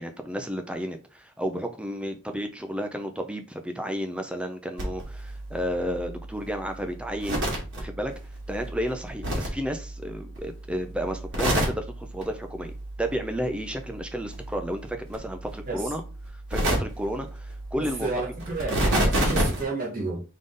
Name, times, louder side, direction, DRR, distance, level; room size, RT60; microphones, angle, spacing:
voice 1, 0.0-7.4 7.8-8.1 8.5-12.7 13.0-16.0 16.5-18.2, equal, 5° right, 0.5 m, -32 dB
sound 1, 4.8-10.6 10.8-12.2 12.6-14.0 14.2-19.6, right 1 dB, 65° right, 2.0 m, -30 dB
voice 2, 18.0-20.2, right 3 dB, 45° right, 1.4 m, -31 dB
3.7 x 3.7 x 3.8 m
head